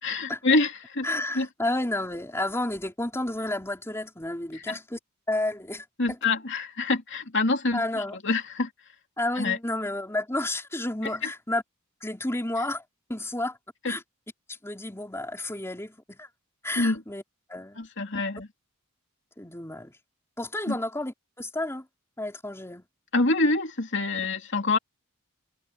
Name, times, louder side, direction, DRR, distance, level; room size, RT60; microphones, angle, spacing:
voice 1, 0.0-1.1 1.3-1.5 4.5-4.8 6.0-8.7 9.4-9.6 13.8-13.9 16.8-17.0 17.8-18.5 20.7-20.8 23.1-24.8, left 3 dB, 55° left, 3.0 m, -26 dB
voice 2, 1.0-5.0 5.3-6.2 7.7-8.2 9.2-11.6 12.0-12.8 13.1-13.6 13.9-14.0 14.5-16.3 16.6-17.2 17.5-17.8 19.4-20.0 20.4-21.9 22.2-22.9, left 1 dB, 10° left, 3.7 m, -31 dB
head